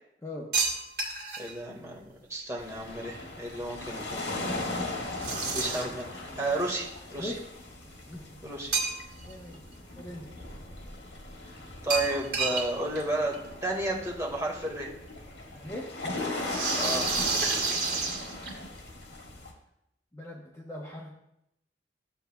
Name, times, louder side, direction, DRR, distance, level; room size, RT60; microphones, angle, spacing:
sound 1, 0.5-1.5 5.2-6.0 8.7-9.3 9.7-9.8 11.9-12.7 12.9-13.0 13.3-13.4 14.6-14.7 16.4-18.8, right 4 dB, 60° right, 2.1 m, -29 dB
voice 1, 1.4-5.1 5.5-7.3 8.4-8.7 11.8-14.9 16.7-17.1, right 2 dB, 20° right, -2 dB, 1.8 m, -33 dB
sound 2, 2.6-19.5, left 2 dB, 75° left, 1.7 m, -38 dB
voice 2, 9.2-9.6 10.0-10.3 15.5-15.9 20.1-21.1, left 1 dB, 15° left, -2 dB, 0.9 m, -40 dB
13.5 x 8.0 x 2.3 m, 0.81 s
head